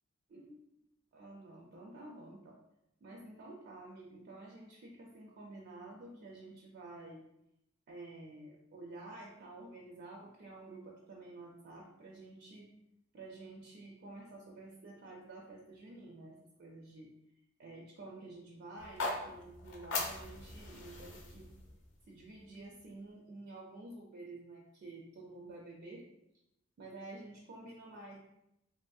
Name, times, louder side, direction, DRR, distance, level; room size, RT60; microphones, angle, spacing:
voice 1, 0.3-0.6 1.1-2.6 3.0-7.2 7.9-12.7 13.1-17.1 17.6-21.5 22.1-26.1 26.8-28.2, right 2 dB, 55° right, -1 dB, 0.4 m, -50 dB
sound 1, 18.8-22.9, left 3 dB, 65° left, 0.6 m, -41 dB
2.8 x 2.6 x 2.3 m, 0.84 s
head